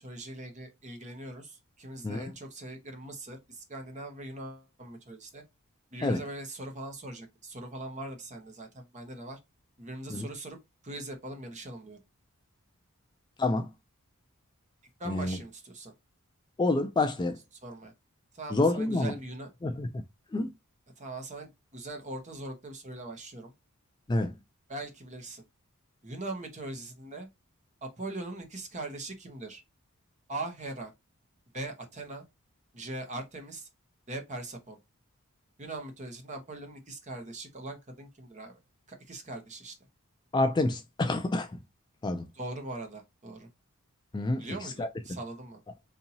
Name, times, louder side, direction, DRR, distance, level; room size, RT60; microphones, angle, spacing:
voice 1, 0.0-5.4 5.9-9.4 9.8-10.6 10.8-12.0 15.0-15.9 17.6-17.9 18.3-19.5 21.0-23.5 24.7-25.4 26.0-27.3 27.8-29.6 30.3-30.9 31.5-32.2 32.7-33.7 34.1-34.8 35.6-38.6 38.9-39.7 42.4-43.5 44.4-45.6, right 2 dB, 35° right, 1.0 m, -41 dB
voice 2, 13.4-13.7 15.1-15.4 16.6-17.4 18.5-19.1 19.6-20.0 20.3-20.5 24.1-24.3 40.3-41.6 42.0-42.3 44.1-44.9, left 2 dB, 20° left, 0.3 m, -28 dB
4.1 x 2.7 x 2.7 m
head